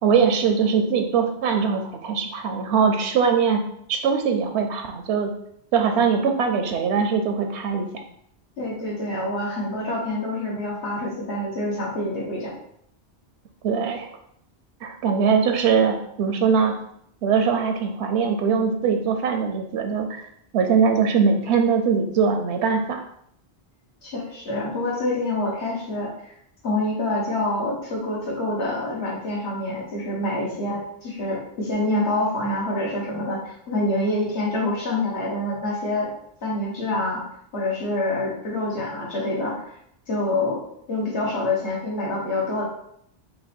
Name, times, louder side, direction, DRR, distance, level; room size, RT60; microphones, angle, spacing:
voice 1, 0.0-3.6 3.9-5.3 5.7-7.9 13.6-14.1 14.8-16.7 17.2-20.3 20.5-23.0, right 6 dB, 85° right, 4 dB, 0.9 m, -21 dB
voice 2, 8.6-12.5 24.0-26.3 26.6-36.1 36.4-37.2 37.5-39.7 40.1-40.6 40.9-42.6, left 2 dB, 80° left, -4 dB, 1.7 m, -26 dB
5.4 x 2.1 x 4.3 m, 0.70 s
omnidirectional pair, 1.1 m